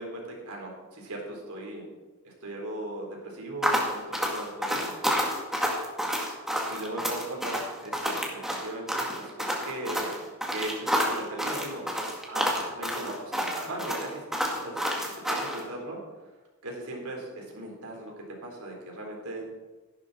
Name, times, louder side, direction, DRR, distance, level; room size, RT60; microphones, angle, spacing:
voice 1, 0.0-1.8 2.2-5.4 6.7-10.2 10.5-11.8 12.3-14.2 14.6-16.0 16.6-18.1 18.4-19.5, right 1 dB, 70° right, 0 dB, 4.1 m, -38 dB
sound 1, 3.6-15.6, equal, ahead, 2.1 m, -29 dB
15.0 x 11.5 x 4.3 m, 1.2 s
head